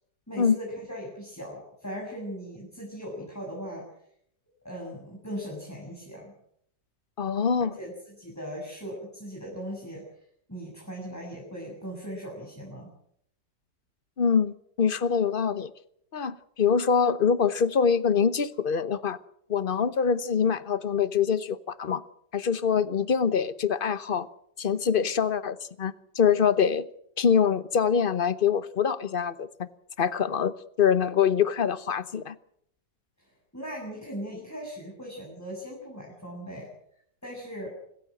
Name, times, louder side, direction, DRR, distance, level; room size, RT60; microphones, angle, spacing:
voice 1, 0.3-3.9 4.6-6.3 7.8-10.0 10.5-12.9 33.2-36.7 37.2-37.7, equal, 10° left, -2 dB, 7.3 m, -39 dB
voice 2, 7.2-7.7 14.2-15.7 16.1-19.2 19.5-22.0 22.3-24.3 24.6-26.8 27.2-29.7 30.0-32.3, left 7 dB, 40° left, 14 dB, 0.9 m, -24 dB
26.5 x 15.0 x 7.7 m, 0.70 s
omnidirectional pair, 1.9 m